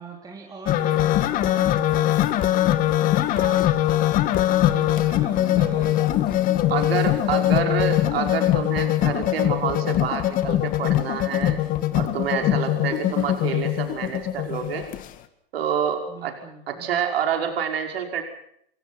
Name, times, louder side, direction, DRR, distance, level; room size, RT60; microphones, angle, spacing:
voice 1, 0.0-4.2 4.7-7.5 12.7-13.4 16.1-16.9, right 4 dB, 10° right, 0 dB, 3.8 m, -42 dB
sound 1, 0.7-15.1, left 13 dB, 25° left, 2.0 m, -22 dB
voice 2, 6.7-11.6 11.9-14.8 15.5-16.3 16.7-18.2, right 7 dB, 75° right, 4 dB, 5.7 m, -27 dB
28.0 x 23.5 x 6.0 m, 0.71 s
hypercardioid pair, 145°, 30 cm